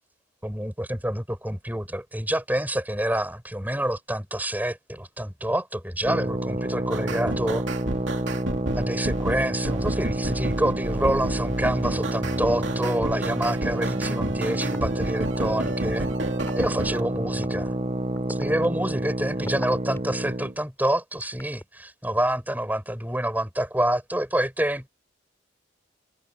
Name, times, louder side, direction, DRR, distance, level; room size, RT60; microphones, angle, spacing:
voice 1, 0.4-7.6 8.8-16.1 16.6-17.7 18.3-24.9, right 1 dB, 10° right, 5.3 m, -27 dB
sound 1, 6.0-20.6, right 1 dB, 30° right, 1.1 m, -29 dB
sound 2, 6.9-17.0, right 1 dB, 70° right, 2.6 m, -31 dB
sound 3, 13.9-14.0 14.7-14.8 15.4-15.7 16.4-16.7 17.4-17.5 18.1-20.2 20.9-21.6, left 1 dB, 15° left, 4.2 m, -39 dB
head